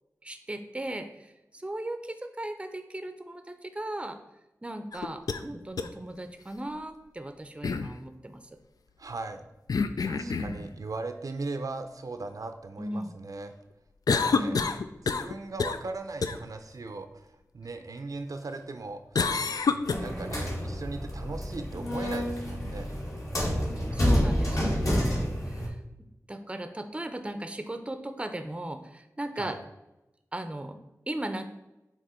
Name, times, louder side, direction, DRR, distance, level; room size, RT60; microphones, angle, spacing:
voice 1, 0.2-4.2 4.6-8.6 10.2-10.7 12.8-13.2 14.3-14.7 23.9-25.8 26.3-29.6 30.3-30.8 31.1-31.4, right 1 dB, 20° right, 8 dB, 0.5 m, -37 dB
sound 1, 4.9-5.4 5.8-5.9 7.6-7.9 9.7-10.6 14.1-15.3 15.6-15.9 16.2-16.4 19.2-19.9, left 5 dB, 85° left, 0.3 m, -27 dB
voice 2, 9.0-9.4 10.0-13.5 14.1-14.6 15.0-17.3 17.5-19.3 19.7-22.9 29.4-29.6, right 3 dB, 70° right, 7 dB, 0.5 m, -38 dB
sound 2, 19.9-25.7, equal, 60° left, 1.9 m, -29 dB
7.4 x 3.0 x 4.3 m, 0.99 s
wide cardioid pair, 65°, 6 cm